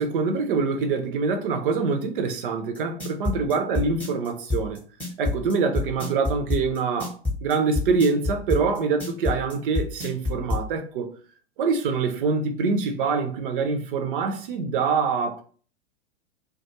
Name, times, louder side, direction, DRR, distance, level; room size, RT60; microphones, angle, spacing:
voice 1, 0.0-4.8 5.2-11.1 11.6-15.4, right 4 dB, 50° right, 0.5 m, -25 dB
sound 1, 2.7-10.6, left 3 dB, 5° left, 0.7 m, -27 dB
2.3 x 2.3 x 2.8 m
figure-of-eight pair, 95°, 36 cm